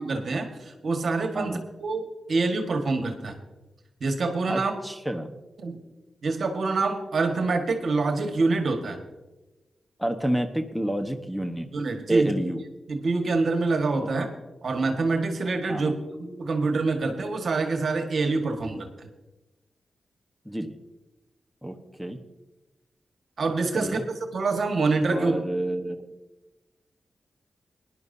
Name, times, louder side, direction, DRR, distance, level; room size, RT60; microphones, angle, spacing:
voice 1, 0.0-3.3 4.0-4.7 5.6-5.8 6.2-9.0 11.7-12.4 12.9-14.3 14.6-18.9 23.4-24.0 24.3-25.3, right 3 dB, 65° right, 5 dB, 1.7 m, -26 dB
voice 2, 4.5-5.3 10.0-11.7 12.1-12.6 14.0-14.1 15.7-15.9 20.4-20.8 21.6-22.2 23.7-24.0 25.1-26.1, right 1 dB, 5° right, 4 dB, 1.2 m, -29 dB
19.5 x 11.0 x 2.8 m, 1.1 s
supercardioid pair, 45°, 0 cm